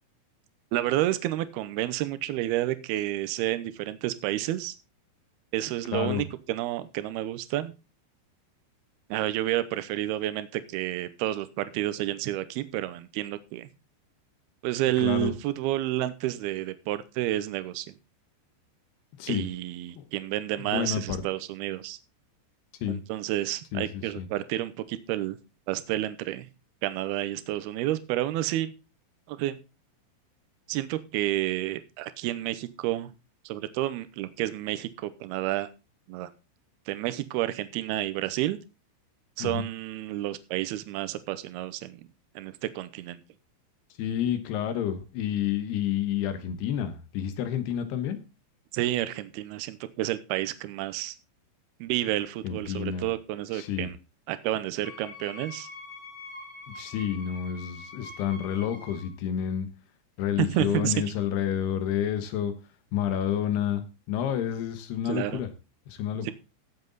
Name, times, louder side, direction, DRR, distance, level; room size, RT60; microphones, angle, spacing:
voice 1, 0.7-4.7 5.5-7.7 9.1-13.7 14.6-17.9 19.3-22.0 22.9-25.4 25.7-26.5 26.8-28.7 29.3-29.6 30.7-33.1 33.5-35.7 36.1-36.3 36.9-38.6 39.4-42.1 42.4-43.2 48.7-51.2 51.8-54.0 54.3-55.7 60.4-60.9 65.1-65.4 66.2-66.3, right 14 dB, 75° right, 13 dB, 2.5 m, -30 dB
voice 2, 5.9-6.2 15.0-15.3 19.2-19.5 20.0-20.1 20.6-21.2 22.8-23.0 23.7-24.3 39.4-39.6 44.0-48.2 52.4-53.1 53.5-53.9 56.8-59.7 60.2-62.5 62.9-65.5 65.9-66.3, left 9 dB, 70° left, 10 dB, 3.1 m, -29 dB
Wind instrument woodwind instrument, 54.8-59.1, left 3 dB, 50° left, 5.6 m, -44 dB
16.0 x 7.9 x 4.1 m, 0.30 s
omnidirectional pair, 5.2 m